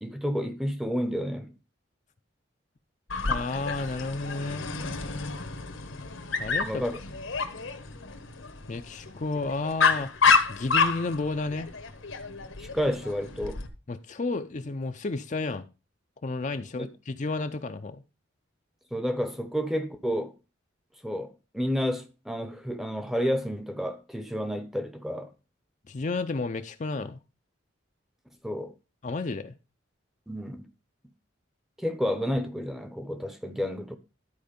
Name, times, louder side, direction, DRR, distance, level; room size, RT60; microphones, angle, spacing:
voice 1, 0.0-1.5 6.6-7.0 12.6-13.6 16.8-16.9 18.9-20.3 21.0-25.3 28.4-28.7 30.3-30.7 31.8-34.0, equal, ahead, 0.7 m, -30 dB
Dog, 3.1-13.7, left 5 dB, 80° left, 1.3 m, -29 dB
voice 2, 3.3-5.1 6.4-6.8 8.7-10.1 10.5-11.7 13.9-15.7 16.2-18.0 25.9-27.2 29.0-29.5, left 3 dB, 35° left, 0.5 m, -32 dB
11.5 x 4.6 x 5.1 m
head